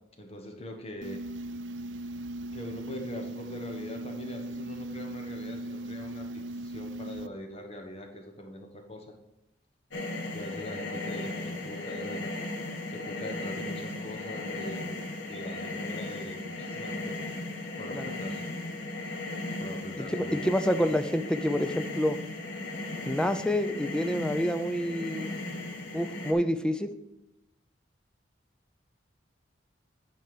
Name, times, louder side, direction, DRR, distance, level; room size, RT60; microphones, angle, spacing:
voice 1, 0.2-1.3 2.0-2.1 2.5-9.1 10.3-12.2 12.9-17.3 17.8-18.5 19.6-20.4, left 1 dB, 35° left, 4 dB, 1.2 m, -42 dB
sound 1, 1.0-7.3, right 1 dB, 80° right, 0.4 m, -38 dB
sound 2, 9.9-26.3, left 2 dB, 80° left, 1.4 m, -36 dB
voice 2, 20.0-22.2 23.0-25.3 25.9-26.9, equal, 5° left, 9 dB, 0.4 m, -28 dB
9.3 x 4.4 x 6.7 m, 0.95 s
head